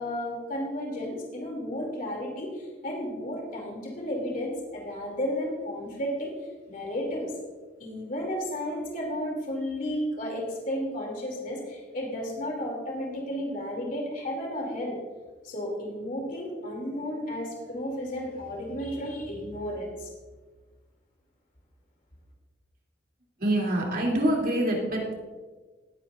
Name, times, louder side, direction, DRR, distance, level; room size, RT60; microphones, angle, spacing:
voice 1, 0.0-6.3 6.7-7.3 7.8-15.0 15.4-20.1, equal, 50° left, -1 dB, 3.0 m, -33 dB
voice 2, 23.4-25.1, right 1 dB, 55° right, -2 dB, 3.1 m, -25 dB
18.5 x 9.5 x 2.6 m, 1.3 s
head